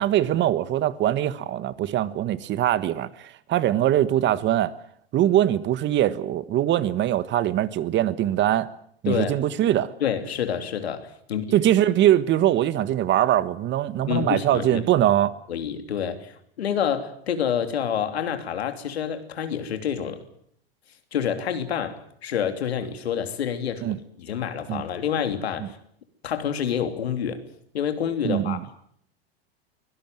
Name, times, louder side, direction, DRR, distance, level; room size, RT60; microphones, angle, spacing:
voice 1, 0.0-4.7 5.1-8.7 9.0-9.9 11.5-15.3 23.8-24.0 24.7-24.8 25.6-25.7 28.2-28.6, right 12 dB, 35° right, 1.4 m, -22 dB
voice 2, 9.0-9.4 10.0-11.6 14.1-14.8 15.5-20.2 21.1-25.8 26.2-27.4 27.7-28.9, left 8 dB, 85° left, 3.1 m, -28 dB
24.0 x 17.5 x 9.1 m
hypercardioid pair, 105°, 31 cm